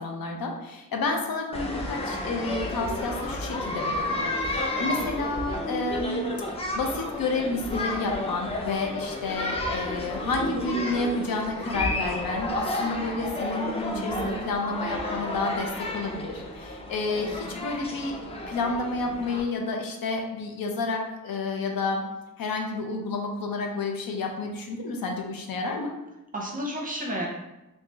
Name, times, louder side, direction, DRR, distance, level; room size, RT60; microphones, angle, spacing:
voice 1, 0.0-6.2 6.7-18.2 18.5-22.0 22.4-25.9, left 3 dB, 90° left, 2 dB, 0.6 m, -30 dB
sound 1, 1.5-19.4, left 1 dB, 20° left, 0.4 m, -32 dB
voice 2, 4.7-5.1 13.9-14.4 26.3-27.3, right 1 dB, 25° right, -2 dB, 0.6 m, -33 dB
3.0 x 2.8 x 3.4 m, 0.98 s
wide cardioid pair, 145°, 34 cm